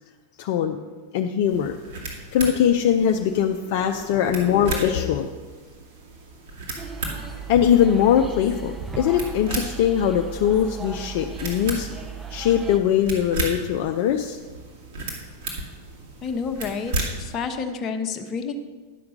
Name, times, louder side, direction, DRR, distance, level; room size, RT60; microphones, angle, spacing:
voice 1, 0.4-0.8 1.1-1.8 2.3-5.3 7.5-11.9 12.3-14.4, left 9 dB, 50° left, 4 dB, 0.5 m, -21 dB
sound 1, 1.5-17.3, right 2 dB, 55° right, 2.2 m, -35 dB
sound 2, 6.8-12.8, right 6 dB, 15° right, 0.7 m, -36 dB
voice 2, 16.2-18.5, left 5 dB, 30° left, 6 dB, 0.9 m, -29 dB
10.5 x 5.8 x 6.4 m, 1.4 s
figure-of-eight pair, 90°, 0 cm